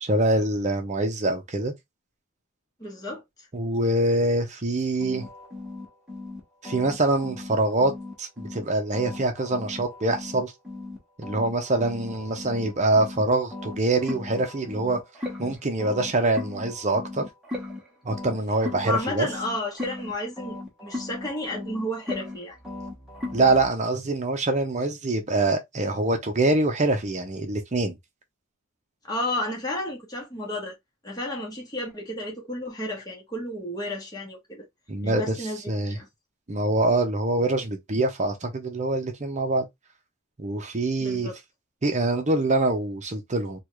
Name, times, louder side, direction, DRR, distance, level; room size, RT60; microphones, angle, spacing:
voice 1, 0.0-1.7 3.5-5.3 6.6-7.9 8.2-10.5 11.2-15.0 15.4-17.2 18.0-19.3 23.3-27.9 34.9-36.0 36.5-39.7 40.4-41.3 41.8-43.6, right 2 dB, 35° right, 0.7 m, -24 dB
voice 2, 2.8-3.5 18.8-20.5 20.8-22.6 29.0-30.8 31.0-34.6 35.0-36.1 41.0-41.3, left 1 dB, 20° left, 1.1 m, -32 dB
sound 1, 5.0-8.7 8.9-13.2 13.5-23.7, left 2 dB, 5° right, 1.1 m, -37 dB
3.3 x 2.4 x 3.0 m
head